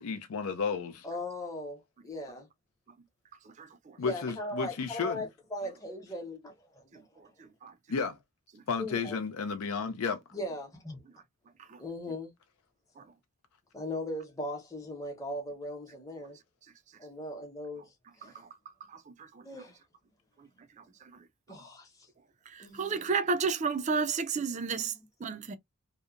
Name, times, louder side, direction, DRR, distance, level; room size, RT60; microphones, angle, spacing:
voice 1, 0.0-1.1 4.0-5.2 7.9-8.2 8.7-10.2, left 5 dB, 75° left, 0.4 m, -32 dB
voice 2, 1.0-2.5 4.0-7.0 8.8-9.2 10.3-11.0 11.8-12.3 13.7-16.4 17.0-18.4 19.4-19.8 21.5-22.1 22.6-23.0 24.7-24.9, left 1 dB, 15° left, 0.7 m, -39 dB
voice 3, 3.6-4.0 7.6-7.7 11.7-11.8 13.0-13.1 18.2-18.5 18.9-19.4 21.0-21.1 22.5-24.9 25.2-25.6, right 5 dB, 30° right, 0.3 m, -32 dB
2.7 x 2.1 x 2.4 m
head